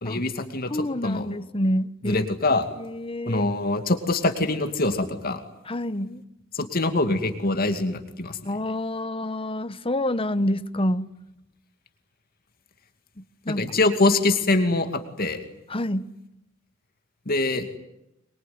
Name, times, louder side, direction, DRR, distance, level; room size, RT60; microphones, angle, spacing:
voice 1, 0.0-1.3 2.0-2.7 3.3-5.4 6.5-8.4 13.5-15.4 17.3-17.7, left 2 dB, 50° left, 2.5 m, -24 dB
voice 2, 0.7-3.4 5.7-6.2 8.4-11.1 13.2-13.8 15.7-16.1, left 1 dB, 25° left, 1.1 m, -28 dB
23.5 x 23.5 x 9.7 m
head